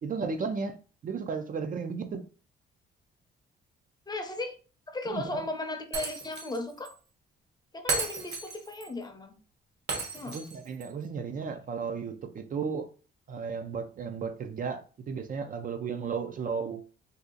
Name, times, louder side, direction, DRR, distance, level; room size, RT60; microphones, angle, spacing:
voice 1, 0.0-2.2 5.1-5.4 10.2-12.9 13.3-16.8, right 5 dB, 45° right, 0.5 m, -34 dB
voice 2, 4.1-4.6 4.9-6.9 7.7-9.4 10.1-10.4, left 2 dB, 20° left, 0.7 m, -36 dB
Shatter, 5.9-6.6 6.8-6.9 7.9-8.9 9.9-10.9, right 4 dB, 60° right, 1.1 m, -34 dB
2.7 x 2.4 x 3.8 m
cardioid pair, 90°, 20 cm